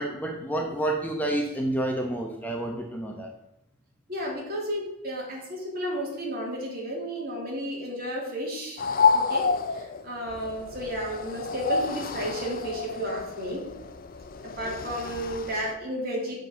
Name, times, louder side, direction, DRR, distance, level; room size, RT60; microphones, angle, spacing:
voice 1, 0.0-3.3, right 1 dB, 10° left, 2 dB, 0.8 m, -29 dB
voice 2, 4.1-8.8 9.1-13.7 14.4-16.4, equal, 50° right, -2 dB, 2.7 m, -33 dB
sound 1, 8.8-15.7, left 5 dB, 45° left, 0.6 m, -29 dB
6.2 x 5.2 x 6.8 m, 0.81 s
head